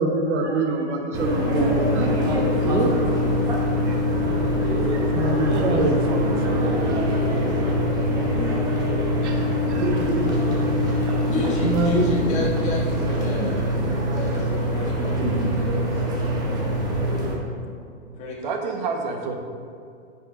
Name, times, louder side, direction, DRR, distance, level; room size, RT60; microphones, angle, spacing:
voice 1, 0.0-2.2 2.6-3.2 3.8-4.3 5.0-6.0 6.6-7.4 7.7-7.9 8.7-9.4 9.7-10.5 10.9-12.1 14.0-14.2, right 2 dB, 65° right, 2 dB, 1.4 m, -26 dB
sound 1, 1.1-17.4, left 1 dB, 10° right, 0.7 m, -23 dB
voice 2, 5.4-7.9 18.4-19.4, right 3 dB, 40° right, 3 dB, 1.0 m, -31 dB
voice 3, 11.2-15.1 15.4-16.0 18.2-18.5, left 2 dB, 20° left, -3 dB, 1.3 m, -32 dB
9.6 x 5.7 x 3.9 m, 2.4 s
hypercardioid pair, 160°, 37 cm